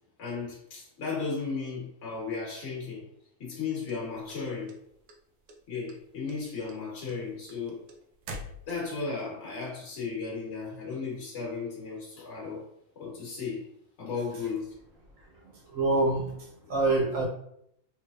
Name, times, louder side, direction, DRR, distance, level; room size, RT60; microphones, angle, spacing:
voice 1, 0.2-3.1 3.4-4.8 5.7-7.8 8.7-12.7 12.9-13.7 14.0-14.7, left 4 dB, 55° left, -3 dB, 1.4 m, -35 dB
sound 1, 3.9-5.1 5.5-6.0 6.3-9.1, equal, 85° right, 1.1 m, -44 dB
voice 2, 15.7-17.2, right 2 dB, 65° right, -2 dB, 1.3 m, -26 dB
3.3 x 3.2 x 2.4 m, 0.73 s
omnidirectional pair, 1.5 m